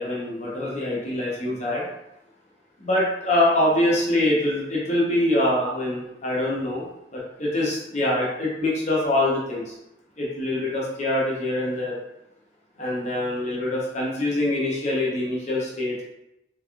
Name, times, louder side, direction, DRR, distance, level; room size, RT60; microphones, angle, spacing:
voice 1, 0.0-1.9 2.8-9.8 10.2-12.0 12.8-16.0, left 1 dB, 40° left, -5 dB, 0.8 m, -24 dB
3.4 x 3.3 x 2.3 m, 0.87 s
head